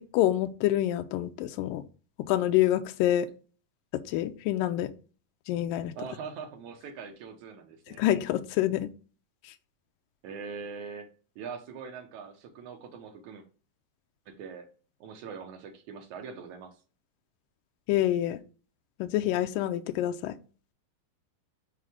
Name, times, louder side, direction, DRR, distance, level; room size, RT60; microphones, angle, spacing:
voice 1, 0.1-1.8 2.3-3.3 4.1-4.9 5.5-5.9 8.0-8.9 17.9-18.4 19.0-20.4, left 13 dB, 85° left, 8 dB, 2.0 m, -26 dB
voice 2, 6.0-8.0 10.2-11.1 11.4-13.5 14.3-14.7 15.0-16.8, right 5 dB, 70° right, 4 dB, 1.9 m, -42 dB
6.2 x 4.8 x 3.5 m, 0.37 s
omnidirectional pair, 4.5 m